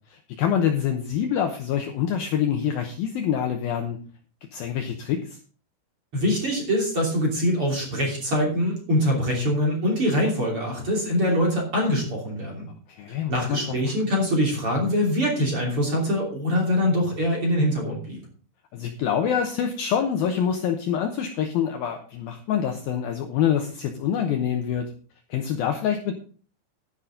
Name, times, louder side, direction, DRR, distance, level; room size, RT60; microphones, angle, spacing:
voice 1, 0.1-4.0 4.5-5.4 12.9-13.6 18.7-24.9 25.3-26.1, left 8 dB, 85° left, 4 dB, 2.1 m, -26 dB
voice 2, 6.1-12.7 13.3-18.2, equal, 35° right, -1 dB, 3.2 m, -23 dB
11.5 x 10.0 x 3.8 m, 0.40 s
omnidirectional pair, 5.5 m